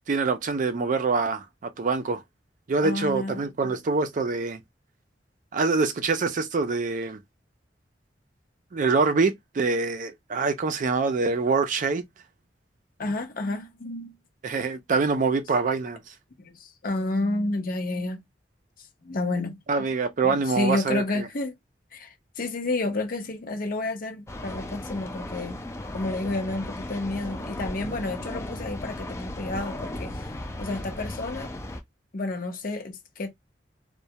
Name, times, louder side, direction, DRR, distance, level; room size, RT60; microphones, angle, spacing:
voice 1, 0.1-1.4 1.8-2.2 2.7-4.6 5.5-7.2 8.7-12.0 14.4-16.1 19.7-21.3, right 4 dB, 45° right, 0.4 m, -25 dB
voice 2, 2.8-3.5 13.0-14.1 16.4-18.2 19.0-19.6 20.2-21.5 21.9-25.6 25.9-30.3 30.6-31.5 32.1-33.3, left 2 dB, 55° left, 0.6 m, -30 dB
sound 1, 24.3-31.8, left 1 dB, 15° left, 0.4 m, -36 dB
2.2 x 2.1 x 2.7 m
head